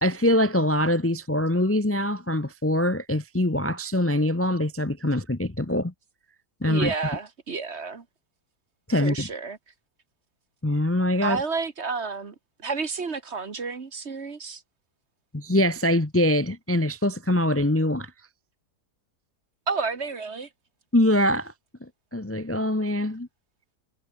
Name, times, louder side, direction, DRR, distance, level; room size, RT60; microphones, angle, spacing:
voice 1, 0.0-5.9 6.6-6.9 8.9-9.3 10.6-11.4 15.3-18.1 20.9-21.5 21.8-23.3, left 1 dB, 10° left, 0.8 m, -23 dB
voice 2, 6.7-8.1 9.0-9.6 11.2-14.6 19.7-20.5, right 4 dB, 40° right, 1.7 m, -31 dB
omnidirectional pair, 1.8 m